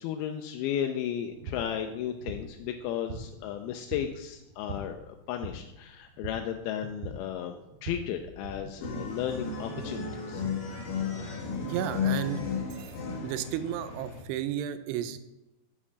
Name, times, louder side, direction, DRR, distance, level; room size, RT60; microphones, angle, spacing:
voice 1, 0.0-7.6 7.8-10.4, left 9 dB, 85° left, 5 dB, 2.2 m, -34 dB
sound 1, 1.1-8.9, right 1 dB, 55° right, 1.9 m, -43 dB
sound 2, 8.8-14.2, left 6 dB, 65° left, 1.8 m, -34 dB
voice 2, 11.6-12.4 12.8-12.9 13.2-15.2, right 10 dB, 85° right, 11 dB, 2.7 m, -33 dB
7.3 x 5.3 x 6.9 m, 0.95 s
omnidirectional pair, 4.9 m